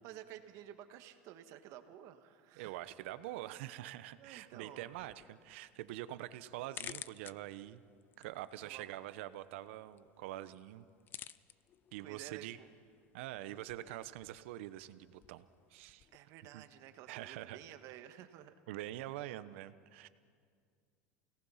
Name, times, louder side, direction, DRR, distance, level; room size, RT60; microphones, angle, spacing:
voice 1, 0.0-2.8 4.2-4.9 8.6-8.9 12.0-12.7 16.1-18.5, right 12 dB, 55° right, 8 dB, 1.5 m, -52 dB
voice 2, 2.6-7.8 8.2-10.8 11.9-12.6 13.1-15.4 15.7-16.1 16.5-16.6 17.1-17.6 18.7-20.1, right 14 dB, 75° right, 14 dB, 0.9 m, -45 dB
sound 1, 4.9-16.2, left 10 dB, 30° left, 0.4 m, -55 dB
29.0 x 18.5 x 5.7 m, 2.1 s
supercardioid pair, 130°, 7 cm